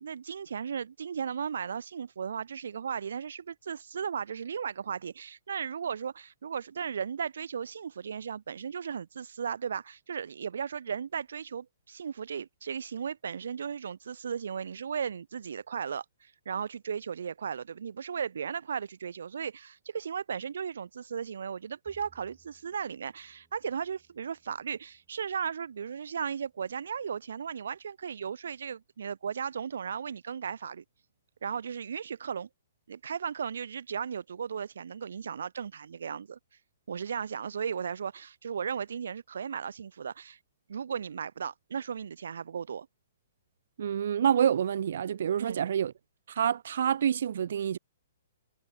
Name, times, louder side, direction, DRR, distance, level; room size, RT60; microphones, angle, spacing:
voice 1, 0.0-30.8 31.4-32.5 32.9-36.4 36.9-40.4 40.7-42.9 45.4-45.6, right 7 dB, 75° right, 2.0 m, -36 dB
Bowed string instrument, 21.9-28.2, right 5 dB, 5° right, 7.4 m, -69 dB
voice 2, 43.8-45.9 46.3-47.8, right 9 dB, 55° right, 0.3 m, -27 dB
hypercardioid pair, 175°, 0 cm